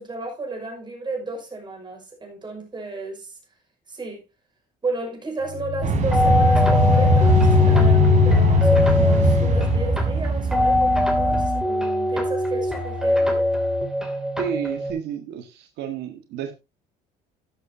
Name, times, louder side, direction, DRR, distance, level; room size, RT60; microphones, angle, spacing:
voice 1, 0.0-3.4 3.9-4.2 4.8-13.5, right 3 dB, 25° right, 5.8 m, -33 dB
sound 1, 5.5-10.2, left 11 dB, 70° left, 0.7 m, -20 dB
sound 2, 5.8-11.5, right 6 dB, 45° right, 3.2 m, -22 dB
sound 3, 6.1-14.9, left 1 dB, 5° right, 2.9 m, -23 dB
voice 2, 14.4-16.5, right 9 dB, 85° right, 1.6 m, -31 dB
13.5 x 10.5 x 2.8 m
cardioid pair, 110°, 17 cm